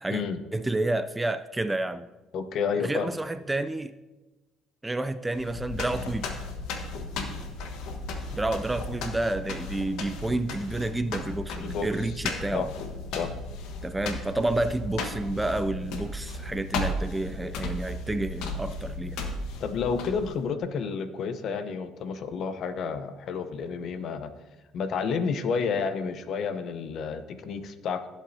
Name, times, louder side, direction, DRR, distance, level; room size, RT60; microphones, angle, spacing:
voice 1, 0.5-2.1 2.8-3.9 4.8-6.3 8.3-12.7 13.8-19.2, right 2 dB, 10° right, 11 dB, 0.3 m, -30 dB
voice 2, 2.3-3.2 11.6-12.1 12.5-12.7 13.1-13.3 19.6-24.3 24.7-28.1, left 5 dB, 55° left, 10 dB, 0.8 m, -30 dB
sound 1, 5.3-20.4, left 2 dB, 75° left, 1.2 m, -35 dB
15.5 x 8.1 x 2.7 m, 1.1 s
cardioid pair, 120°, 0 cm